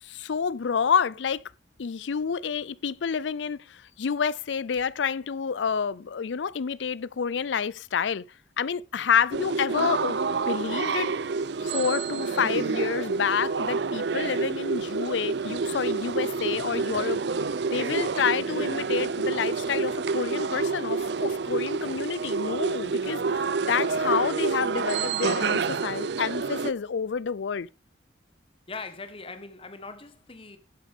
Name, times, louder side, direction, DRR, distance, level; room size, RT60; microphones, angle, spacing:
voice 1, 0.0-1.4 1.8-8.2 8.6-11.1 11.6-17.2 17.7-27.7, left 6 dB, 80° left, 0.5 m, -28 dB
sound 1, 9.3-26.7, right 4 dB, 70° right, 0.5 m, -28 dB
voice 2, 28.7-30.6, left 4 dB, 30° left, 1.4 m, -41 dB
11.5 x 10.0 x 3.6 m
head